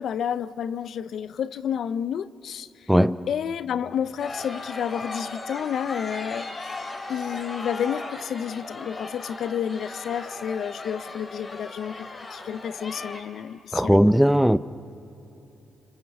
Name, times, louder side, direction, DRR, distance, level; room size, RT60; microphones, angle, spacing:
voice 1, 0.0-2.7 3.3-6.7 7.1-14.0, left 8 dB, 70° left, 0.6 m, -30 dB
sound 1, 4.2-13.2, left 2 dB, 40° left, 3.0 m, -37 dB
voice 2, 13.7-14.6, equal, ahead, 0.7 m, -18 dB
29.5 x 24.5 x 7.1 m
supercardioid pair, 55°, 0 cm